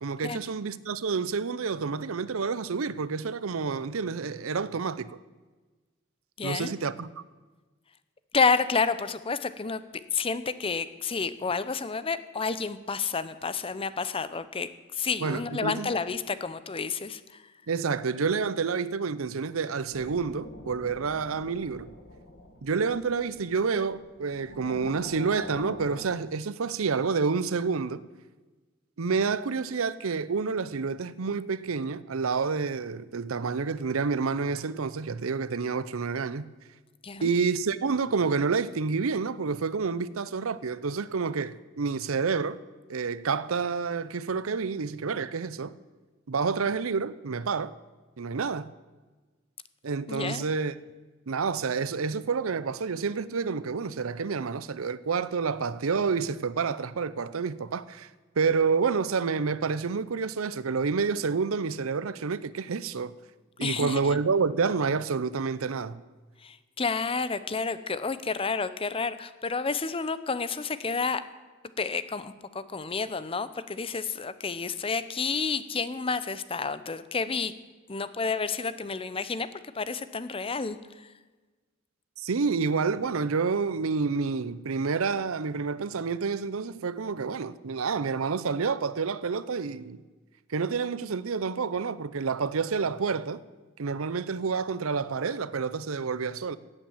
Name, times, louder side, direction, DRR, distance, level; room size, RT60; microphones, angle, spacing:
voice 1, 0.0-5.2 6.4-7.2 15.2-15.9 17.7-21.9 22.6-28.0 29.0-36.5 37.2-42.6 42.9-45.7 46.3-47.7 48.2-48.7 49.8-50.8 51.3-58.1 58.4-63.1 63.6-66.0 82.2-90.0 90.5-93.4 93.8-96.6, right 5 dB, 90° right, 0.6 m, -29 dB
voice 2, 6.4-6.7 8.3-9.8 10.1-17.2 37.0-37.4 50.1-50.4 63.6-64.0 66.4-71.2 71.8-77.5 77.9-79.5 79.7-81.1, left 4 dB, 25° left, 0.6 m, -30 dB
sound 1, 19.9-26.1, left 1 dB, 60° left, 2.1 m, -46 dB
16.0 x 8.7 x 7.2 m
head